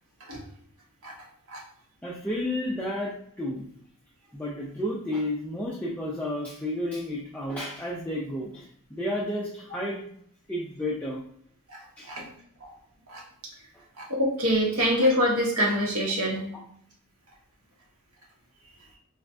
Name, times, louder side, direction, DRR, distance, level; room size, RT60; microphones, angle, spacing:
voice 1, 2.0-3.7 4.3-10.1 10.5-11.2 12.0-12.1, left 1 dB, 5° left, -5 dB, 0.3 m, -31 dB
voice 2, 14.0-16.4, equal, 80° right, -2 dB, 1.1 m, -25 dB
4.0 x 2.2 x 2.5 m, 0.66 s
head